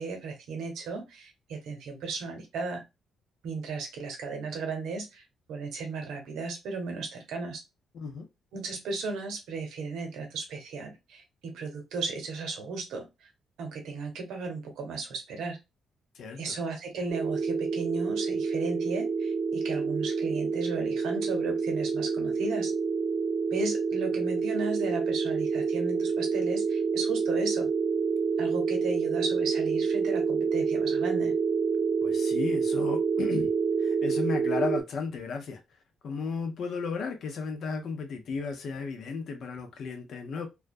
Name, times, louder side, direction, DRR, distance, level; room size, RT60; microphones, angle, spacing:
voice 1, 0.0-2.8 3.4-5.2 5.5-7.6 8.5-13.3 13.6-15.6 16.4-22.7 23.5-27.7 28.4-31.3, right 3 dB, 80° right, 0.8 m, -35 dB
voice 2, 7.9-8.3 16.1-16.5 32.0-33.5 33.8-35.6 36.0-40.5, left 5 dB, 65° left, 0.6 m, -34 dB
sound 1, 17.1-34.8, right 5 dB, 40° right, 0.3 m, -28 dB
2.3 x 2.1 x 2.5 m
cardioid pair, 90°, 0 cm